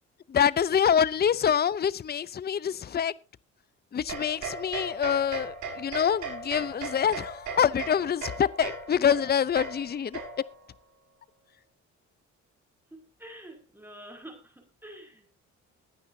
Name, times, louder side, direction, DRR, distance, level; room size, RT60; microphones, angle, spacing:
voice 1, 0.3-3.2 3.9-10.2, left 8 dB, 35° left, 0.6 m, -26 dB
sound 1, 4.1-10.7, right 4 dB, 70° right, 5.8 m, -38 dB
voice 2, 12.9-15.3, right 1 dB, 5° right, 5.8 m, -47 dB
22.0 x 9.6 x 2.8 m
cardioid pair, 90°, 30 cm